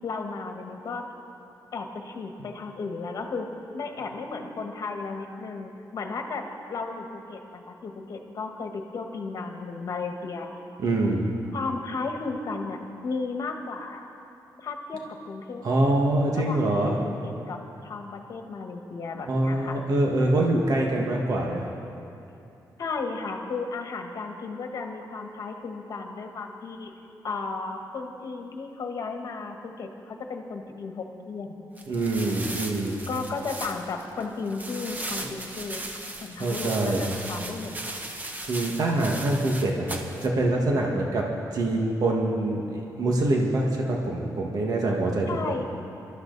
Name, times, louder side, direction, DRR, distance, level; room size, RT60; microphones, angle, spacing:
voice 1, 0.0-1.0 1.7-10.5 11.5-14.1 14.6-15.9 16.3-19.8 22.8-26.9 27.2-31.5 33.1-35.8 36.2-38.0 45.3-45.6, left 4 dB, 55° left, 4 dB, 1.5 m, -34 dB
voice 2, 10.8-11.3 15.6-17.0 19.3-21.7 31.9-33.0 36.4-37.1 38.5-45.3, right 2 dB, 55° right, -1 dB, 1.7 m, -25 dB
sound 1, 31.8-40.3, right 2 dB, 25° right, 1.1 m, -37 dB
25.0 x 12.5 x 4.1 m, 2.8 s
wide cardioid pair, 155°, 7 cm